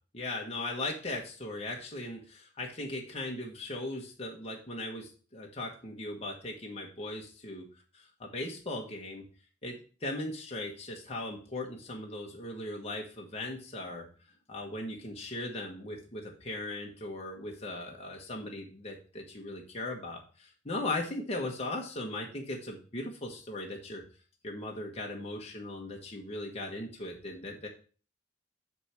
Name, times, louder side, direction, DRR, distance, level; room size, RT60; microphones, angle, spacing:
voice 1, 0.1-7.7 7.9-9.2 9.6-14.0 14.5-24.0 24.4-27.7, left 2 dB, 35° left, 0 dB, 1.3 m, -38 dB
8.8 x 3.4 x 6.3 m, 0.39 s
head